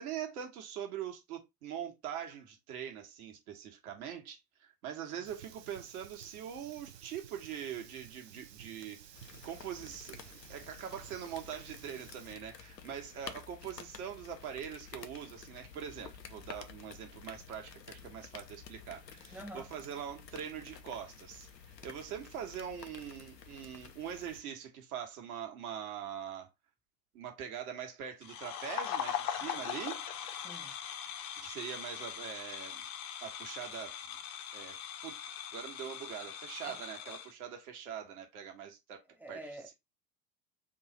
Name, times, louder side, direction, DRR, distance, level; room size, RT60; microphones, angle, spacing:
voice 1, 0.0-9.0 9.4-26.5 27.1-30.3 31.4-32.8 33.2-34.0 34.5-34.8 35.0-35.2 35.5-39.0 39.3-39.4, right 9 dB, 60° right, 1.4 m, -43 dB
Fire, 5.2-12.4, right 9 dB, 80° right, 0.7 m, -54 dB
sound 1, 9.1-24.4, left 7 dB, 85° left, 0.7 m, -51 dB
voice 2, 19.3-19.7 30.4-30.8 36.6-36.8 37.1-37.2 39.1-39.7, right 1 dB, 5° right, 0.6 m, -47 dB
sound 2, 28.2-37.3, left 9 dB, 60° left, 0.9 m, -41 dB
3.7 x 2.4 x 4.1 m
figure-of-eight pair, 70°, 49 cm